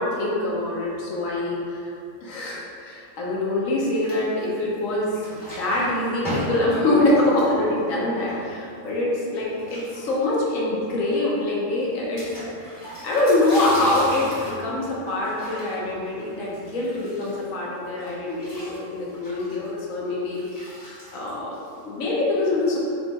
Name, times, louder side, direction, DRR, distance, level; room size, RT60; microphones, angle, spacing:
voice 1, 0.0-1.9 2.2-12.2 13.0-20.7 21.1-22.8, left 2 dB, 80° left, -4 dB, 1.2 m, -24 dB
sound 1, 3.9-4.8 5.0-8.9 9.5-10.5 10.8-10.9 11.1-11.2 12.2-17.6 18.0-22.0, equal, 30° left, 1.2 m, -37 dB
3.4 x 2.4 x 4.0 m, 2.5 s
omnidirectional pair, 1.3 m